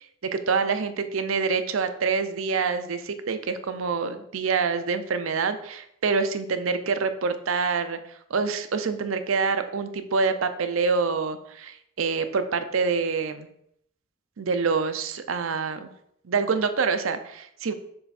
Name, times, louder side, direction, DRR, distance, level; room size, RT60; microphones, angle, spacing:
voice 1, 0.2-13.5 14.4-15.9 16.2-17.7, right 5 dB, 85° right, 9 dB, 0.6 m, -26 dB
6.7 x 3.4 x 4.2 m, 0.72 s
head